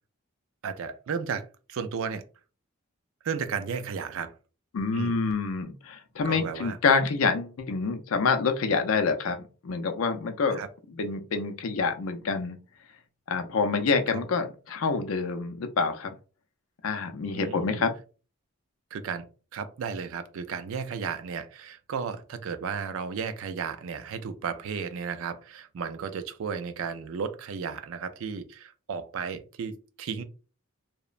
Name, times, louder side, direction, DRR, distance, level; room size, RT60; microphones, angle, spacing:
voice 1, 0.6-2.2 3.2-4.4 4.9-5.2 6.2-6.8 10.5-10.7 14.1-14.2 17.3-17.8 18.9-19.3 19.5-30.2, right 6 dB, 70° right, 0.4 m, -34 dB
voice 2, 4.7-9.4 9.6-10.6 10.9-12.6 13.3-16.1 16.8-17.9, left 4 dB, 75° left, 0.4 m, -27 dB
2.9 x 2.1 x 2.4 m
head